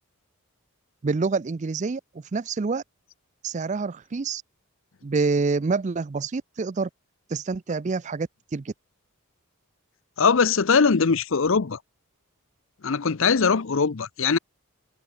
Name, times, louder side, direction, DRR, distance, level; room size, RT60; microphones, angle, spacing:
voice 1, 1.0-2.0 2.3-2.8 3.4-4.4 5.0-6.9 7.3-8.7, right 4 dB, 35° right, 0.4 m, -27 dB
voice 2, 10.2-11.8 12.8-14.4, left 5 dB, 60° left, 0.6 m, -21 dB
head